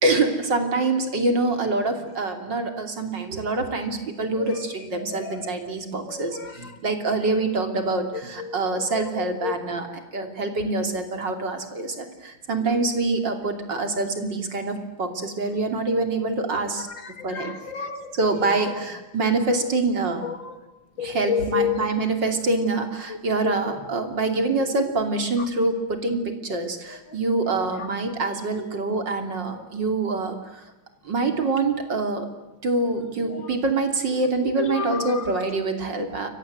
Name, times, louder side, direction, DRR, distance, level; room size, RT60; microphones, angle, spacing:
voice 1, 0.0-9.9 10.1-16.9 17.2-17.5 18.1-20.3 21.0-30.6 31.1-32.3 32.6-36.3, right 3 dB, 60° right, 6 dB, 3.6 m, -25 dB
voice 2, 4.9-5.6 6.0-6.6 8.1-9.5 12.6-12.7 16.9-18.1 18.4-18.5 20.2-20.6 21.0-21.9 23.4-23.9 26.9-27.2 27.5-27.9 33.2-33.5 34.4-35.4, left 7 dB, 60° left, 7 dB, 3.3 m, -31 dB
29.5 x 23.5 x 7.8 m, 1.0 s
omnidirectional pair, 2.3 m